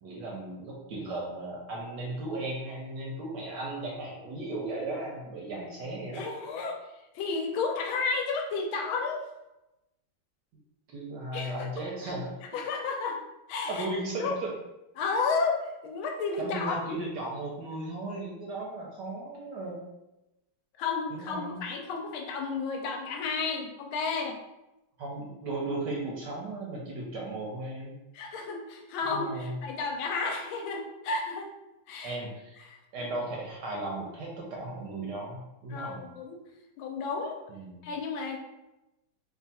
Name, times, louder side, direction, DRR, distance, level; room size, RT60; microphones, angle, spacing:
voice 1, 0.0-6.3 10.9-12.4 13.7-14.5 16.4-19.8 21.1-21.6 25.0-27.9 29.1-29.6 32.0-32.6 32.9-36.0 37.5-37.9, right 2 dB, 70° right, -2 dB, 1.1 m, -36 dB
voice 2, 6.1-9.3 11.3-11.7 12.5-13.2 13.5-13.9 14.2-14.3 15.0-16.8 20.8-24.4 28.1-31.5 31.9-32.2 32.6-32.8 35.0-35.1 35.7-36.4 36.8-37.4 37.8-38.4, left 4 dB, 80° left, 3 dB, 1.3 m, -32 dB
3.5 x 2.3 x 4.1 m, 0.96 s
omnidirectional pair, 2.3 m